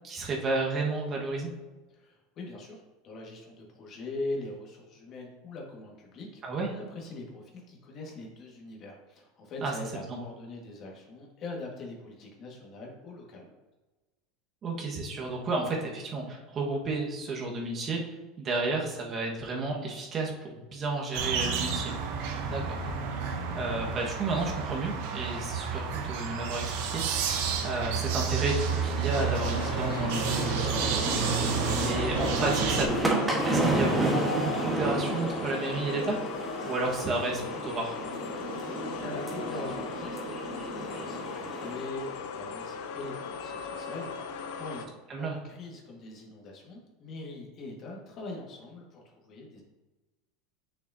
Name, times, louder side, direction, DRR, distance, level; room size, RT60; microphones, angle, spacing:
voice 1, 0.0-1.5 6.4-6.7 9.6-9.7 10.1-10.2 14.6-22.8 23.6-30.7 31.8-36.2 36.6-38.0 45.1-45.4, right 3 dB, 40° right, -1 dB, 1.5 m, -32 dB
voice 2, 1.9-13.5 38.9-49.6, left 2 dB, 45° left, -1 dB, 1.7 m, -42 dB
sound 1, 21.1-32.9, right 6 dB, 70° right, 0.9 m, -30 dB
sound 2, 28.4-41.9, right 2 dB, 15° right, 1.4 m, -32 dB
sound 3, 29.1-44.9, left 5 dB, 75° left, 0.6 m, -38 dB
6.6 x 6.0 x 2.8 m, 1.2 s
hypercardioid pair, 95°, 0 cm